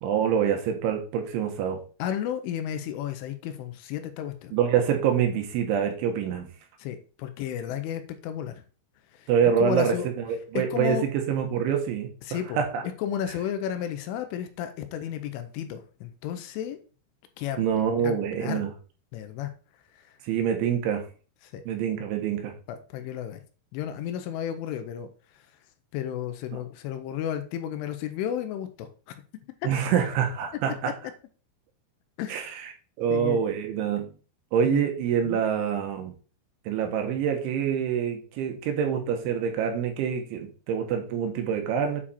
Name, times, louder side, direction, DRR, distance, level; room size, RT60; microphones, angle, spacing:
voice 1, 0.0-1.8 4.5-6.5 9.3-12.1 12.6-12.8 17.6-18.7 20.2-21.0 21.7-22.5 26.5-26.6 29.6-30.9 32.3-32.7 33.0-34.1 34.5-36.1 36.7-42.0, right 8 dB, 75° right, 4 dB, 3.5 m, -26 dB
voice 2, 2.0-4.5 6.8-8.6 9.1-9.3 9.6-10.1 10.7-11.1 12.3-12.6 13.0-16.8 17.4-17.6 18.0-18.7 19.1-19.5 21.4-21.6 22.7-23.4 23.7-25.1 25.9-28.9 32.2-32.5 33.1-33.4 34.6-34.8 35.2-35.4, left 10 dB, 80° left, 8 dB, 3.3 m, -33 dB
8.6 x 4.9 x 4.3 m, 0.37 s
omnidirectional pair, 5.7 m